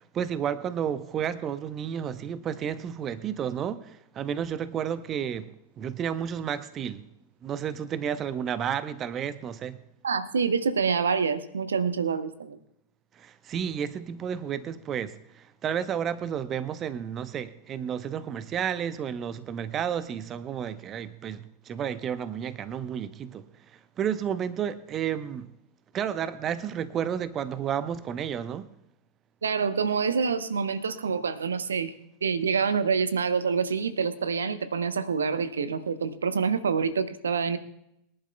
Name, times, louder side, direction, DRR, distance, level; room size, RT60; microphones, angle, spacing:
voice 1, 0.0-7.1 7.4-9.8 13.2-23.4 24.0-25.5 25.9-28.7, right 8 dB, 30° right, 0.8 m, -31 dB
voice 2, 10.0-12.6 29.4-31.9 32.2-37.6, right 5 dB, 70° right, 0.9 m, -26 dB
23.0 x 11.5 x 2.3 m
figure-of-eight pair, 90°, 0 cm